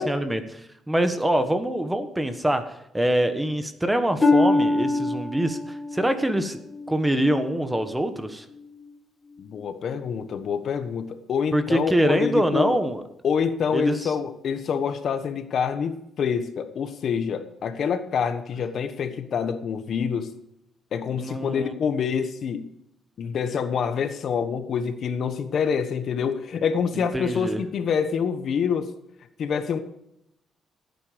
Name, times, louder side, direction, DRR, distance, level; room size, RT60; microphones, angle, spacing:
voice 1, 0.0-6.6 6.9-8.4 11.5-13.0 13.7-14.1 21.1-21.7 26.9-27.6, right 1 dB, 10° right, 9 dB, 1.4 m, -24 dB
Harp, 4.2-7.9 8.5-8.9 9.5-9.6, left 3 dB, 25° left, 2.0 m, -25 dB
voice 2, 9.4-12.8 13.2-20.3 20.9-22.7 23.2-28.9 29.4-29.8, left 6 dB, 60° left, 9 dB, 1.2 m, -26 dB
17.0 x 9.4 x 5.2 m, 0.80 s
cardioid pair, 110°, 0 cm